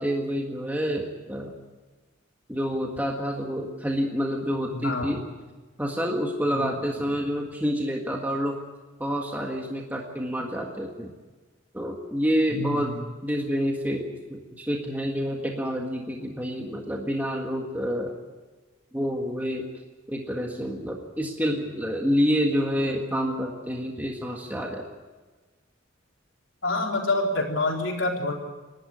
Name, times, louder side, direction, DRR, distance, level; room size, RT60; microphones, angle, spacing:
voice 1, 0.0-1.5 2.5-5.2 5.8-8.6 9.0-11.1 11.7-12.9 13.2-18.2 18.9-19.7 20.1-24.8, equal, 10° right, 0 dB, 1.7 m, -28 dB
voice 2, 4.7-5.1 6.5-6.7 12.5-13.0 26.6-28.3, left 2 dB, 70° left, 0 dB, 4.1 m, -27 dB
28.5 x 12.0 x 9.5 m, 1.3 s
head